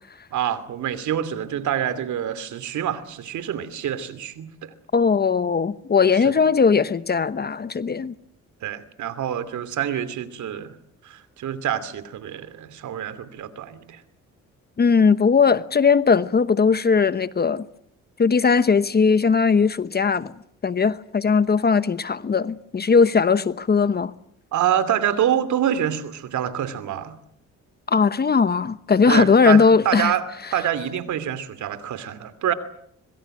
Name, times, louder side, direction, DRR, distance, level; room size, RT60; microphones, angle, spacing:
voice 1, 0.3-4.7 6.2-6.3 8.6-10.7 11.0-14.0 24.5-27.2 29.0-30.3 30.5-32.5, right 10 dB, 75° right, 2.7 m, -26 dB
voice 2, 4.9-8.1 14.8-17.7 18.2-20.3 20.6-24.1 27.9-30.1, left 5 dB, 30° left, 1.1 m, -19 dB
25.5 x 22.5 x 7.8 m
cardioid pair, 90°, 30 cm